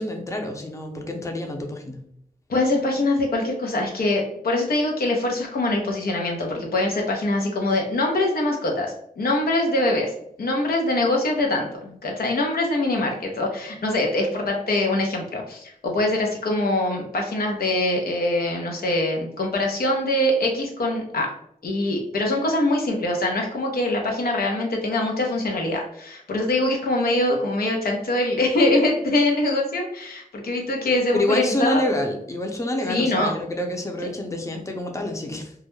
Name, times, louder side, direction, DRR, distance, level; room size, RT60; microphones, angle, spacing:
voice 1, 0.0-2.0 31.1-35.5, left 1 dB, 20° left, 3 dB, 0.5 m, -27 dB
voice 2, 2.5-10.1 10.4-21.3 21.6-31.8 32.9-33.3, left 2 dB, 85° left, 0 dB, 0.6 m, -23 dB
2.3 x 2.1 x 3.0 m, 0.71 s
cardioid pair, 50°, 15 cm